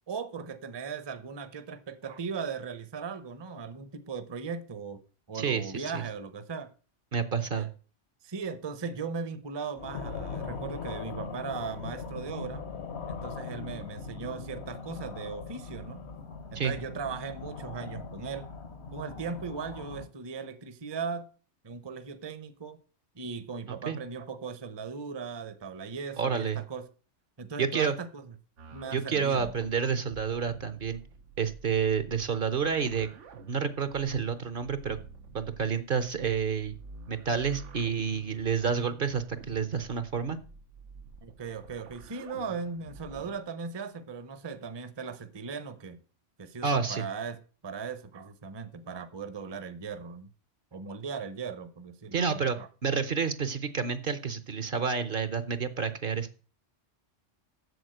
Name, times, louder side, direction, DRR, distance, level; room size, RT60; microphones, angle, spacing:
voice 1, 0.1-5.0 5.3-6.7 7.5-7.7 8.2-12.6 13.1-16.0 16.5-18.5 18.9-21.3 21.6-22.8 23.1-26.8 27.4-28.2 28.7-29.5 41.2-46.0 46.4-47.4 47.6-50.3 50.7-52.7, right 5 dB, 25° right, 0.7 m, -38 dB
voice 2, 5.3-6.0 7.1-7.7 16.5-16.7 23.7-24.0 26.2-26.6 27.6-27.9 28.9-31.0 31.4-33.1 33.5-35.0 35.3-36.7 37.1-40.4 46.6-47.1 52.1-56.4, right 6 dB, 50° right, 1.0 m, -29 dB
sound 1, 9.8-20.1, left 5 dB, 65° left, 1.2 m, -40 dB
sound 2, 28.6-43.4, right 4 dB, 85° right, 1.3 m, -49 dB
7.9 x 7.1 x 7.8 m
omnidirectional pair, 1.2 m